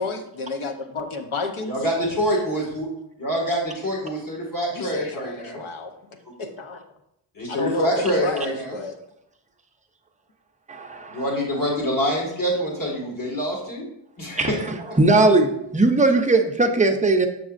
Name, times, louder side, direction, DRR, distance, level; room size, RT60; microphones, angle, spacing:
voice 1, 0.0-1.8 4.7-5.9 6.4-6.8 7.5-9.0, left 3 dB, 80° left, 6 dB, 0.9 m, -31 dB
voice 2, 1.7-2.9 3.2-5.6 7.4-8.7 11.1-13.8 14.2-14.6, equal, 40° left, -2 dB, 1.8 m, -25 dB
voice 3, 10.7-11.2 14.4-17.3, right 2 dB, 15° right, 4 dB, 0.5 m, -19 dB
7.0 x 6.1 x 2.5 m, 0.79 s
wide cardioid pair, 140°, 48 cm